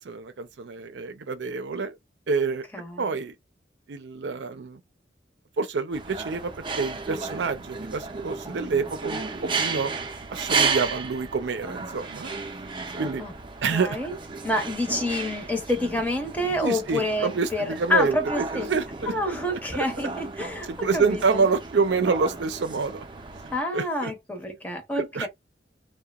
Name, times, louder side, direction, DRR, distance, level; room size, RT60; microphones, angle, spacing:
voice 1, 0.0-2.0 2.3-2.6 3.0-3.3 3.9-4.8 5.6-9.9 10.3-12.3 13.0-13.2 13.6-14.0 16.6-19.4 20.7-23.0 23.7-24.1 25.0-25.3, right 4 dB, 80° right, 0.5 m, -27 dB
voice 2, 2.7-3.2 13.2-13.3 13.7-14.1 14.4-18.7 19.1-21.5 23.5-25.3, left 1 dB, 10° left, 0.7 m, -28 dB
sound 1, 5.9-23.6, right 4 dB, 30° right, 0.5 m, -33 dB
2.8 x 2.2 x 2.3 m
head